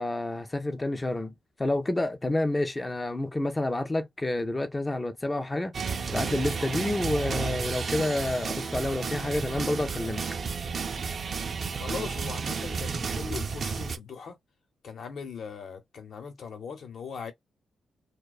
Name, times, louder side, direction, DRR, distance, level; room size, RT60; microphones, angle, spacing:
voice 1, 0.0-1.3 1.6-10.2, left 2 dB, 15° left, 0.4 m, -29 dB
sound 1, 5.7-14.0, right 5 dB, 45° right, 0.4 m, -32 dB
voice 2, 11.8-14.4 14.8-17.3, left 6 dB, 65° left, 0.8 m, -39 dB
2.5 x 2.1 x 2.3 m
cardioid pair, 110°, 0 cm